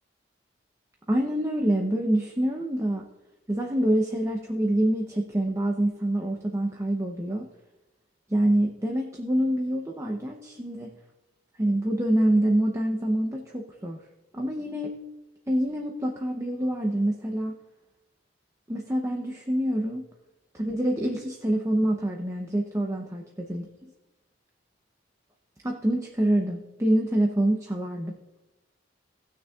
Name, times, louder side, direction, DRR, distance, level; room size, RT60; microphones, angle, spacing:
voice 1, 1.1-3.0 3.5-7.5 8.3-10.9 11.6-14.0 14.3-15.0 15.5-17.6 18.7-20.1 20.5-23.7 25.6-28.2, right 1 dB, 15° right, 1 dB, 0.7 m, -26 dB
18.5 x 6.4 x 2.4 m, 1.0 s
head